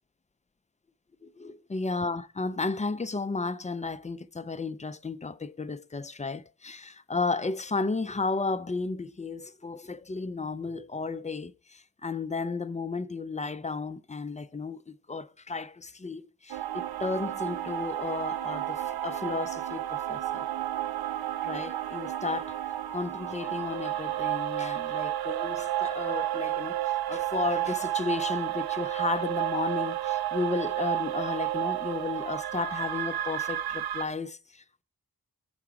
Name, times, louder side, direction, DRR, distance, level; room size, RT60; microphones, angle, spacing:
voice 1, 1.7-20.4 21.4-22.6 22.9-34.8, left 4 dB, 20° left, 0.4 m, -33 dB
sound 1, 16.5-34.0, right 13 dB, 85° right, 0.5 m, -31 dB
7.1 x 5.7 x 5.0 m
wide cardioid pair, 80°, 36 cm